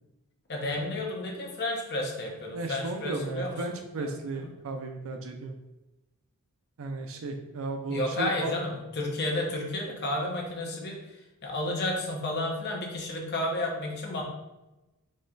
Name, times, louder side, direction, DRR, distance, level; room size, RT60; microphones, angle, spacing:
voice 1, 0.5-4.1 7.9-11.0 11.4-14.2, left 1 dB, 50° left, 0 dB, 1.0 m, -32 dB
voice 2, 2.5-5.5 6.8-8.5, right 2 dB, 65° right, 5 dB, 0.5 m, -34 dB
4.2 x 3.2 x 3.8 m, 1.0 s
head